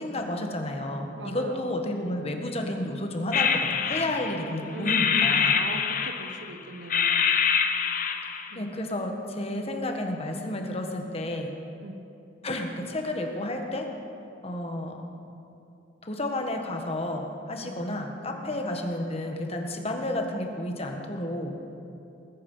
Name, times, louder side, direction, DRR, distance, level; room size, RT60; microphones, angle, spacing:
voice 1, 0.0-5.5 8.5-11.5 12.4-13.9 14.4-15.0 16.0-21.6, left 1 dB, 35° left, 3 dB, 1.4 m, -31 dB
voice 2, 1.2-1.8 4.7-7.3 8.5-8.8 11.8-12.0 17.6-17.8 18.5-18.7 19.8-19.9, right 1 dB, 80° right, 6 dB, 1.1 m, -40 dB
sound 1, 3.3-4.5 4.8-6.5 6.9-8.5, left 7 dB, 50° left, 0.8 m, -25 dB
20.5 x 9.4 x 5.5 m, 2.8 s
head